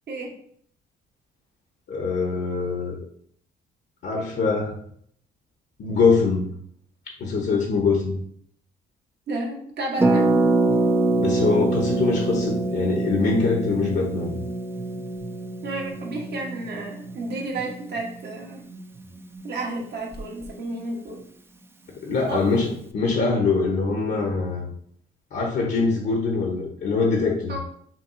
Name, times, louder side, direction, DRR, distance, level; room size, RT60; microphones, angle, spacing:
voice 1, 1.9-3.0 4.0-4.8 5.8-6.5 7.2-8.2 11.2-14.3 22.0-24.7 25.3-27.6, left 4 dB, 60° left, 0 dB, 0.8 m, -23 dB
voice 2, 9.3-10.3 15.6-18.6 19.4-21.2 22.3-22.4 27.5-27.6, right 2 dB, 55° right, 0 dB, 1.1 m, -31 dB
Harp, 10.0-19.6 19.9-20.0 20.1-20.5, right 2 dB, 10° right, 0.3 m, -25 dB
5.7 x 2.3 x 2.5 m, 0.64 s
cardioid pair, 90°, 20 cm